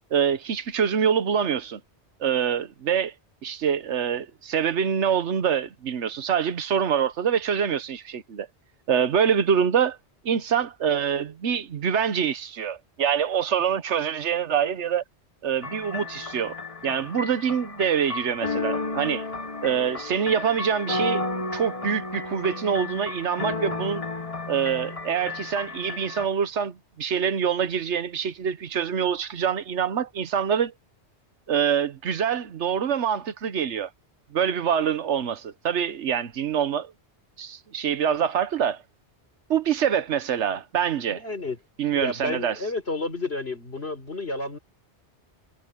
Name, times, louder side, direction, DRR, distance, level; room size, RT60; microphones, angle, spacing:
voice 1, 0.1-1.8 2.2-3.1 3.4-8.5 8.9-10.0 10.2-15.0 15.4-16.6 16.8-19.2 19.6-21.2 21.5-24.0 24.5-30.7 31.5-33.9 34.3-36.9 37.4-38.8 39.5-41.2 41.8-42.6, right 8 dB, 90° right, 1.3 m, -25 dB
sound 1, 15.6-26.3, left 3 dB, 30° left, 1.3 m, -32 dB
voice 2, 41.1-41.6 41.9-44.6, left 2 dB, 65° left, 4.3 m, -31 dB
omnidirectional pair, 1.1 m